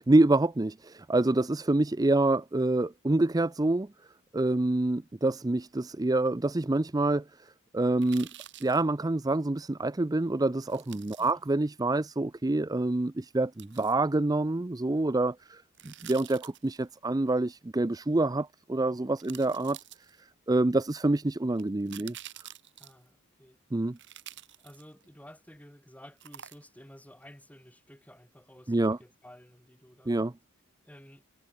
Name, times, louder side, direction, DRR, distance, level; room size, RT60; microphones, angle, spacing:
voice 1, 0.1-3.9 4.3-7.2 7.7-8.3 8.6-19.8 20.5-22.1 23.7-24.0 28.7-29.0 30.1-30.3, right 2 dB, 15° right, 0.5 m, -26 dB
sound 1, 8.0-8.8 10.7-11.3 13.6-13.9 15.7-16.8 18.5-18.6 19.2-20.4 21.6-23.1 24.0-25.1 26.2-26.9 27.2-27.3, right 12 dB, 55° right, 4.5 m, -48 dB
voice 2, 22.8-23.6 24.6-30.2 30.8-31.2, equal, 5° left, 7.9 m, -53 dB
head